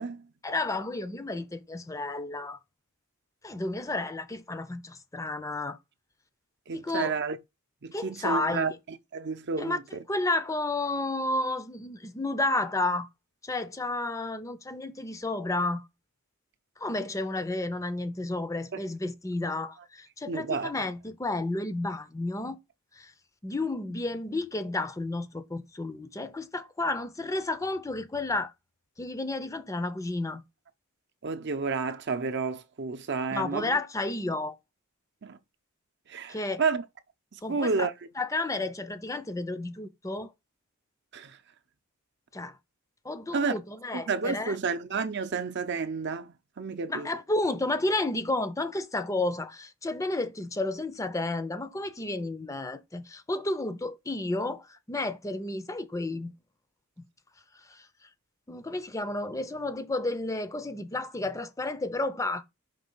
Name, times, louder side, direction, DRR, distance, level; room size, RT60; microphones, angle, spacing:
voice 1, 0.4-2.6 3.4-5.8 6.7-7.1 7.9-8.7 9.6-9.8 10.1-13.1 13.4-15.9 16.8-22.6 22.9-23.1 23.4-28.5 29.0-30.4 33.3-34.6 36.3-36.6 37.4-37.9 38.2-40.3 42.3-42.6 43.0-44.6 46.9-56.3 57.6-57.9 58.5-62.4, left 2 dB, 15° left, 0.6 m, -31 dB
voice 2, 6.7-7.4 7.8-10.0 20.3-20.7 31.2-33.8 35.2-35.4 36.1-36.8 37.3-37.9 41.1-41.4 43.3-43.6 43.9-47.1, right 4 dB, 55° right, 0.6 m, -31 dB
5.3 x 3.3 x 5.5 m
head